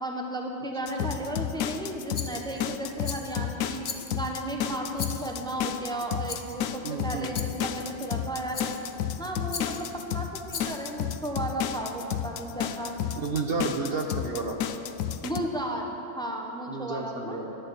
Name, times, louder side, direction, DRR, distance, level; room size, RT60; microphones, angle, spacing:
voice 1, 0.0-3.8 4.1-8.7 9.2-13.0 15.2-17.4, right 1 dB, 5° left, 1 dB, 1.2 m, -34 dB
sound 1, 0.9-15.4, left 10 dB, 85° left, 1.1 m, -32 dB
Rattle, 2.1-2.6 3.0-3.4 3.8-4.4 5.0-5.5 6.3-6.6 7.3-7.7 8.5-9.0 9.5-9.9 10.5-11.0, left 5 dB, 45° left, 1.0 m, -39 dB
voice 2, 6.8-7.3 13.2-14.6 16.7-17.6, right 3 dB, 50° right, 2 dB, 1.2 m, -31 dB
11.5 x 11.5 x 8.2 m, 2.9 s
omnidirectional pair, 1.4 m